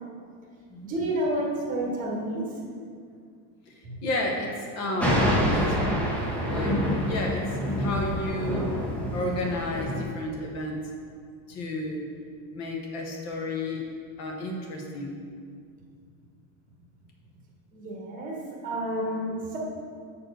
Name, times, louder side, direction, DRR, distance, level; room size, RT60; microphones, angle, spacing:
voice 1, 0.8-2.4 3.8-3.9 17.7-18.4 18.6-19.6, right 1 dB, 15° right, -2 dB, 1.2 m, -30 dB
voice 2, 4.0-5.9 6.4-6.8 7.1-7.4 7.7-10.8 11.5-12.1 12.5-13.8 14.2-15.2, left 1 dB, 35° left, 1 dB, 0.9 m, -32 dB
Thunder, 5.0-10.0, equal, 5° left, 0.7 m, -27 dB
6.4 x 4.3 x 6.4 m, 2.1 s
supercardioid pair, 160°, 47 cm